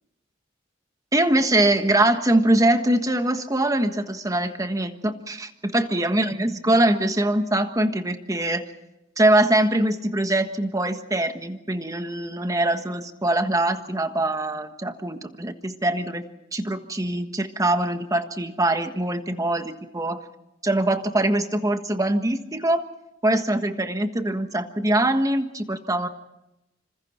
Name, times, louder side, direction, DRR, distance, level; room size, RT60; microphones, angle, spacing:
voice 1, 1.1-8.6 9.2-16.2 16.5-20.2 20.6-22.9 23.2-26.1, right 1 dB, 20° right, 8 dB, 1.4 m, -23 dB
27.0 x 26.5 x 4.4 m, 0.90 s
head